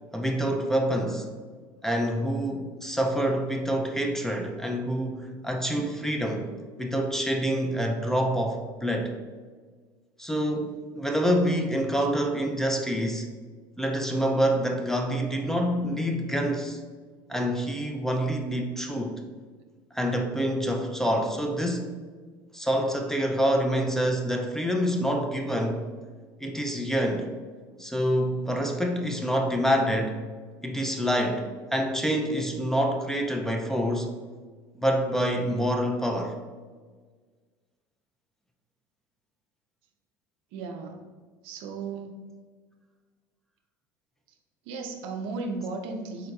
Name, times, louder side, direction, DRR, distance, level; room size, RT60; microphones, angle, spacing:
voice 1, 0.1-1.3 1.8-6.5 6.8-9.1 10.2-13.3 13.8-16.8 17.3-19.2 19.9-21.9 22.5-25.8 26.4-27.3 27.8-30.2 30.6-34.1 34.7-36.4, equal, 5° left, 2 dB, 0.4 m, -27 dB
voice 2, 40.5-41.0 41.4-42.2 44.7-46.3, right 3 dB, 70° right, 3 dB, 0.5 m, -35 dB
3.7 x 2.8 x 2.3 m, 1.5 s
hypercardioid pair, 85°, 11 cm